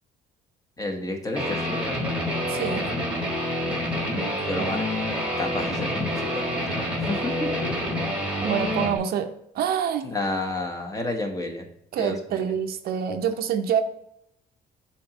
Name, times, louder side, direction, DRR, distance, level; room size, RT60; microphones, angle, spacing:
voice 1, 0.8-2.1 4.5-5.0 5.4-7.5 10.0-11.7 12.0-12.5, left 2 dB, 20° left, 2 dB, 1.1 m, -31 dB
Guitar, 1.4-9.0, equal, 5° right, 1.3 m, -27 dB
voice 2, 2.5-2.8 8.4-10.1 11.9-13.8, right 8 dB, 65° right, 7 dB, 0.6 m, -26 dB
7.1 x 2.9 x 4.7 m, 0.76 s
cardioid pair, 110°, 17 cm